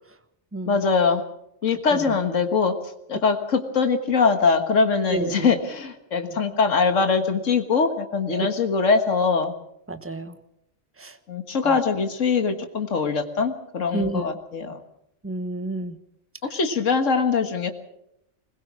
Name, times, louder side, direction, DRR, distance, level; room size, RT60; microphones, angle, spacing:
voice 1, 0.7-1.2 1.6-2.7 3.1-9.5 11.3-14.8 16.5-17.7, left 5 dB, 75° left, 7 dB, 2.0 m, -22 dB
voice 2, 5.1-5.5 8.3-8.5 9.9-10.3 11.0-11.2 13.9-14.2 15.2-16.0, right 2 dB, 10° right, 11 dB, 1.1 m, -29 dB
21.0 x 20.5 x 6.2 m, 0.79 s
omnidirectional pair, 1.3 m